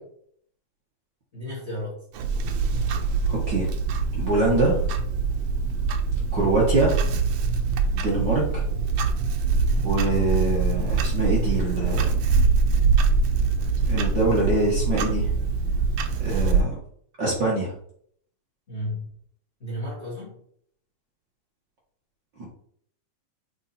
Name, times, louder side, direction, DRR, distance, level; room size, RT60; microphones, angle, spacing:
voice 1, 1.3-2.0 2.7-3.0 18.7-19.1 19.6-20.3, left 1 dB, 30° left, -5 dB, 1.6 m, -33 dB
Clock, 2.1-16.6, right 4 dB, 90° right, 1.2 m, -23 dB
voice 2, 3.3-3.7 4.1-4.8 6.3-6.9 7.9-8.6 9.7-12.2 13.8-15.3 16.2-16.8 17.2-17.7 22.4-22.5, right 2 dB, 45° right, -4 dB, 1.6 m, -24 dB
7.0 x 4.0 x 4.2 m, 0.65 s
omnidirectional pair, 3.4 m